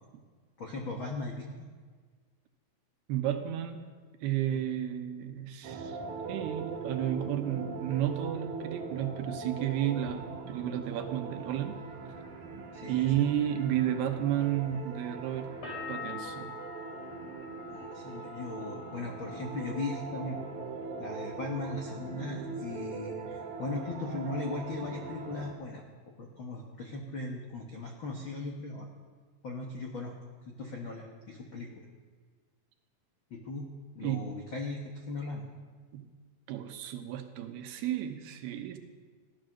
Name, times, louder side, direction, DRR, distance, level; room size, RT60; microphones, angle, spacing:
voice 1, 0.6-1.5 4.5-4.6 12.7-13.0 17.7-20.4 21.0-25.8 26.2-28.9 29.4-30.1 30.5-31.8 33.3-33.7 33.9-35.4, left 2 dB, 70° left, 0 dB, 1.1 m, -38 dB
voice 2, 3.1-3.9 4.2-6.0 6.3-11.8 12.9-15.5 15.9-16.6 34.0-34.4 35.9-36.1 36.5-38.8, right 11 dB, 85° right, 6 dB, 3.0 m, -32 dB
sound 1, 5.6-25.5, right 4 dB, 60° right, 2.5 m, -41 dB
sound 2, 15.6-21.3 21.6-22.3, left 5 dB, 35° left, 4.3 m, -46 dB
16.0 x 12.0 x 6.5 m, 1.5 s
omnidirectional pair, 4.5 m